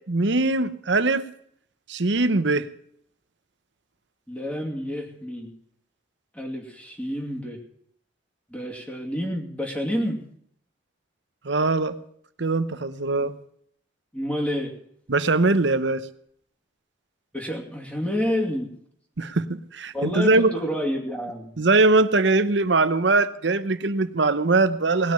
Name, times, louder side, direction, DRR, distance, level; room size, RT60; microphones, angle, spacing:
voice 1, 0.1-1.2 1.9-2.7 11.4-12.0 12.4-13.3 15.1-16.0 19.2-20.5 21.6-25.1, right 3 dB, 70° right, 12 dB, 0.9 m, -21 dB
voice 2, 4.3-5.5 6.3-7.6 8.5-10.2 13.2-13.3 14.1-14.7 17.3-18.7 19.9-21.5, left 1 dB, 5° left, 0 dB, 2.5 m, -29 dB
19.0 x 6.3 x 8.8 m, 0.66 s
head